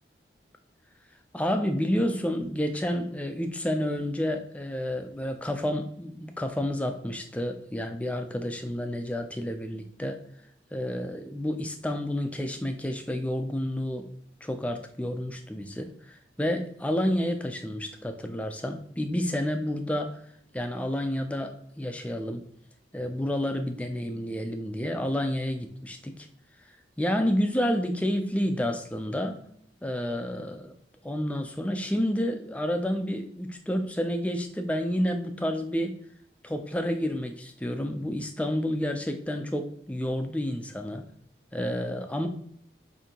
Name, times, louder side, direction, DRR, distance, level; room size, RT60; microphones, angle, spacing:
voice 1, 1.3-10.2 10.7-14.1 14.4-20.2 20.5-22.5 22.9-26.3 26.6-29.4 29.8-30.7 31.0-36.0 36.4-41.0 41.5-42.3, equal, 5° left, 6 dB, 0.4 m, -30 dB
6.7 x 2.7 x 2.9 m, 0.66 s
head